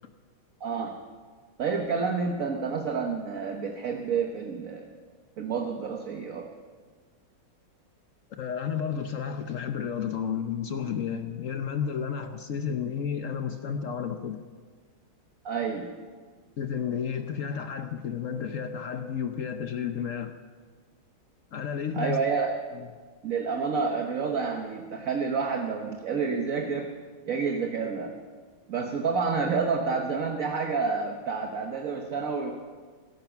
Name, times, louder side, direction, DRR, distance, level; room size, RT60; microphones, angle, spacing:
voice 1, 0.6-1.0 1.6-4.9 5.4-6.5 15.4-15.9 21.9-22.5 23.2-26.9 27.3-28.1 28.7-32.5, right 5 dB, 50° right, 3 dB, 1.3 m, -29 dB
voice 2, 8.4-14.4 16.6-20.3 21.5-22.2 22.7-22.9, left 7 dB, 70° left, 7 dB, 0.7 m, -32 dB
16.5 x 14.0 x 5.9 m, 1.5 s
omnidirectional pair, 2.3 m